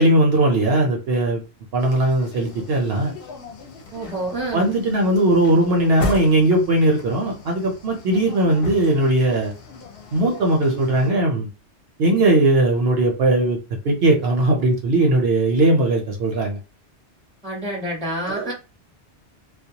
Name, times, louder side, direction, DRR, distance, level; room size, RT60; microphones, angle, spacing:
voice 1, 0.0-1.4 1.7-3.1 4.5-9.5 10.1-11.5 12.0-13.6 13.8-16.6 18.3-18.5, right 1 dB, 65° right, 1 dB, 0.8 m, -19 dB
sound 1, 1.8-11.1, left 2 dB, 60° left, 0.7 m, -36 dB
voice 2, 3.9-4.7 17.4-18.5, right 1 dB, 5° left, -3 dB, 0.6 m, -28 dB
2.2 x 2.1 x 2.7 m, 0.30 s
omnidirectional pair, 1.2 m